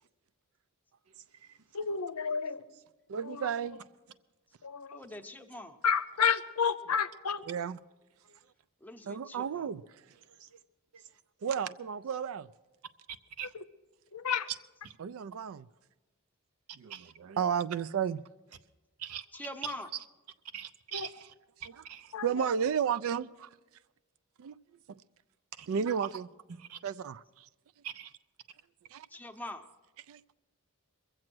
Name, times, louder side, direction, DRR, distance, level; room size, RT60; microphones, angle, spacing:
voice 1, 1.7-2.6 3.2-3.5 4.6-5.0 5.8-7.4 13.5-13.6 14.1-14.5 20.9-21.1 22.1-22.5, left 6 dB, 85° left, 0.7 m, -31 dB
voice 2, 3.1-3.8 7.5-7.8 9.0-9.8 11.4-12.5 15.0-15.7 16.8-18.2 22.2-23.5 24.4-24.5 25.7-26.3 26.8-27.5 28.9-29.1 30.1-30.2, right 7 dB, 65° right, 0.4 m, -32 dB
voice 3, 4.9-5.8 8.8-9.7 19.3-19.9 29.1-29.6, left 1 dB, 10° left, 0.7 m, -43 dB
voice 4, 19.6-20.0 20.5-21.3 21.6-22.1 25.6-25.7 26.5-26.8 27.8-28.1, right 9 dB, 90° right, 0.7 m, -43 dB
22.5 x 7.6 x 6.1 m
head